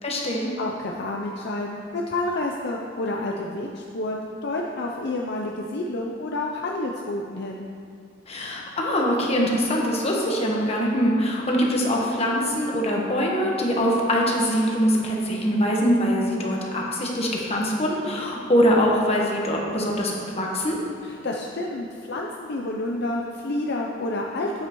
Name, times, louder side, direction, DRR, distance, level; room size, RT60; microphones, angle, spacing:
voice 1, 0.0-0.5 8.3-20.8, equal, 30° left, -2 dB, 1.2 m, -23 dB
voice 2, 0.6-7.7 21.0-24.7, left 2 dB, 55° left, 0 dB, 0.5 m, -29 dB
8.8 x 8.6 x 3.0 m, 2.4 s
head